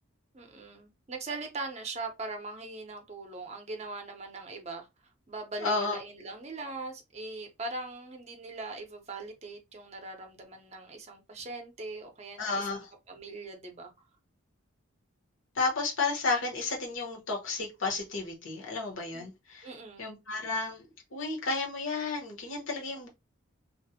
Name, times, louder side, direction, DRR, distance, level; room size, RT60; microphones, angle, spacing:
voice 1, 0.3-4.9 5.3-14.1 19.1-19.3 19.6-20.2, right 3 dB, 30° right, 0.5 m, -41 dB
voice 2, 5.6-6.0 12.4-12.9 15.5-19.7 20.0-23.1, left 3 dB, 70° left, 0.9 m, -32 dB
2.4 x 2.0 x 2.7 m
head